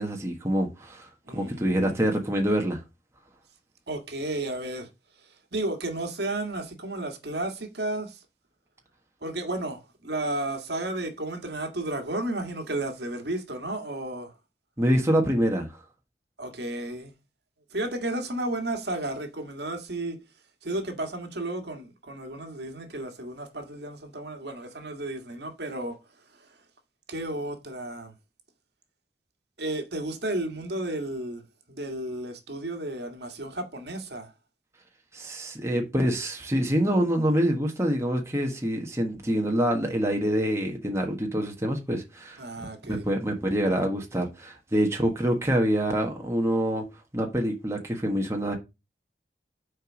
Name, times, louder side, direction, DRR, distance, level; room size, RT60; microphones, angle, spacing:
voice 1, 0.0-1.1 1.3-2.8 14.8-15.7 35.1-42.4 42.9-46.8 47.1-48.6, equal, 15° right, 1.4 m, -26 dB
voice 2, 1.3-2.0 3.9-4.9 5.2-8.2 9.2-14.3 16.4-17.1 17.7-20.2 20.6-26.0 26.3-26.6 27.1-28.1 29.6-31.4 31.7-34.3 42.4-43.0, right 1 dB, 70° right, 1.8 m, -33 dB
6.5 x 4.6 x 6.3 m
head